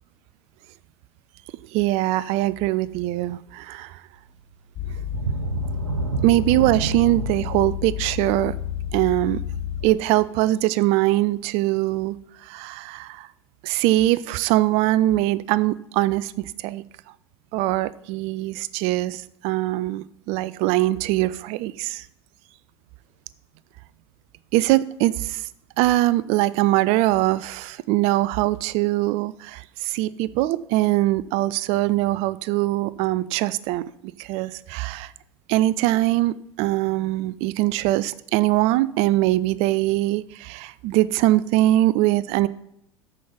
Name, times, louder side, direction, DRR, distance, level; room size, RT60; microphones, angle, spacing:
voice 1, 1.7-4.0 4.9-5.0 6.2-8.5 8.9-9.4 9.8-12.2 12.4-13.3 13.6-16.8 17.5-22.1 24.5-25.5 25.8-33.8 34.2-35.1 35.5-42.5, right 16 dB, 45° right, 18 dB, 0.4 m, -22 dB
sound 1, 4.7-9.9, left 10 dB, 35° left, 1.0 m, -31 dB
sound 2, 5.1-10.5 11.0-11.1 11.6-11.7, right 6 dB, 80° right, 0.9 m, -31 dB
13.5 x 5.6 x 3.7 m, 0.73 s
figure-of-eight pair, 80°, 15 cm